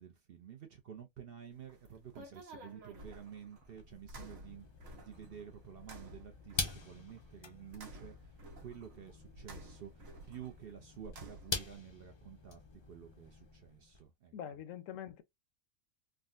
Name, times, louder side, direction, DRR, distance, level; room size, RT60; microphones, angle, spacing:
voice 1, 0.0-4.7 4.9-14.6, right 8 dB, 55° right, 0.7 m, -51 dB
sound 1, 1.5-11.7, right 1 dB, 85° right, 1.3 m, -53 dB
sound 2, 3.5-14.0, left 4 dB, 45° left, 0.3 m, -45 dB
voice 2, 14.3-15.2, left 9 dB, 75° left, 0.9 m, -44 dB
3.6 x 2.2 x 2.4 m
omnidirectional pair, 1.4 m